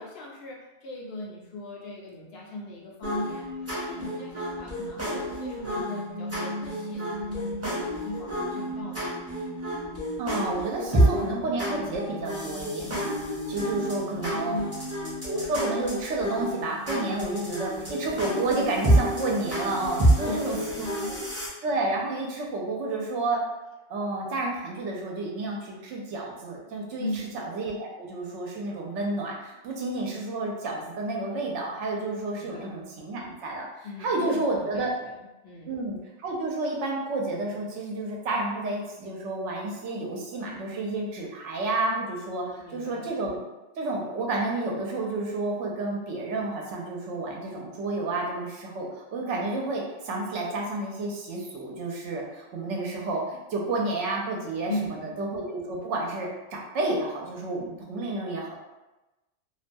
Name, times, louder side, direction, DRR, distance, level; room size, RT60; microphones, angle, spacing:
voice 1, 0.0-3.5 3.9-9.2 13.5-13.8 14.2-14.8 20.0-21.2 27.0-27.4 32.4-32.8 33.8-35.7 42.4-43.1 54.7-55.2, left 1 dB, 65° left, -3 dB, 0.7 m, -38 dB
sound 1, 3.0-21.5, right 1 dB, 15° right, 0.5 m, -29 dB
voice 2, 10.2-13.2 13.5-14.6 15.2-20.6 21.0-21.1 21.6-23.4 23.9-27.1 27.3-34.9 35.7-36.0 36.2-42.4 42.7-43.4 43.8-54.7 55.0-58.6, right 2 dB, 80° right, -1 dB, 0.9 m, -30 dB
2.5 x 2.2 x 2.5 m, 1.0 s
omnidirectional pair, 1.2 m